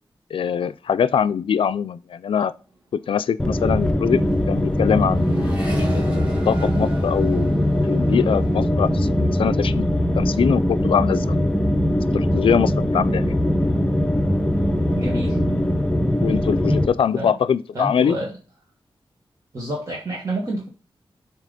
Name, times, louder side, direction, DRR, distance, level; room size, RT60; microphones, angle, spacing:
voice 1, 0.3-2.5 2.9-4.2 4.5-5.3 5.9-7.5 7.8-9.8 10.2-11.4 12.1-13.4 16.2-18.2, left 7 dB, 85° left, 0.3 m, -22 dB
Accelerating revving vroom, 2.7-2.8 3.0-10.5 10.9-11.5, right 1 dB, 15° right, 2.4 m, -41 dB
sound 1, 3.4-16.9, equal, 10° left, 0.5 m, -21 dB
voice 2, 14.9-15.4 17.2-17.4 17.7-18.4 19.5-20.7, right 1 dB, 40° right, 1.3 m, -29 dB
7.5 x 2.9 x 5.0 m
wide cardioid pair, 150°, 9 cm